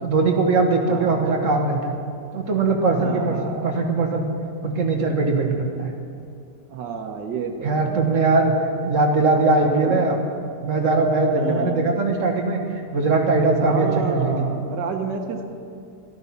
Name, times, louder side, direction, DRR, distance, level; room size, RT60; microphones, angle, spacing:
voice 1, 0.0-2.0 2.3-4.3 4.6-5.9 7.6-8.5 8.8-10.2 10.6-12.6 12.9-14.5, right 3 dB, 50° right, 3 dB, 1.7 m, -20 dB
voice 2, 0.9-1.3 2.9-3.7 6.7-8.1 9.7-10.1 11.3-11.9 13.6-15.4, right 5 dB, 80° right, 3 dB, 1.7 m, -30 dB
13.5 x 12.5 x 5.7 m, 2.4 s
omnidirectional pair, 1.9 m